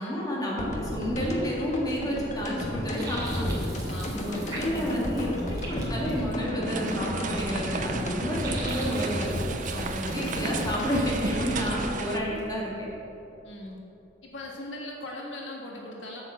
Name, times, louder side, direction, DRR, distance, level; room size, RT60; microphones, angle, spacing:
voice 1, 0.0-3.6 4.1-9.3 9.7-12.9, equal, 20° left, -5 dB, 2.2 m, -30 dB
sound 1, 0.6-13.4, left 1 dB, 40° left, 1.3 m, -33 dB
sound 2, 2.6-12.5, right 2 dB, 20° right, 2.7 m, -43 dB
voice 2, 3.9-4.7 12.2-12.3 13.4-13.8 14.2-16.2, left 1 dB, 80° left, -1 dB, 1.6 m, -39 dB
sound 3, 6.6-12.2, right 5 dB, 45° right, 0.5 m, -35 dB
8.1 x 7.2 x 7.1 m, 2.8 s
head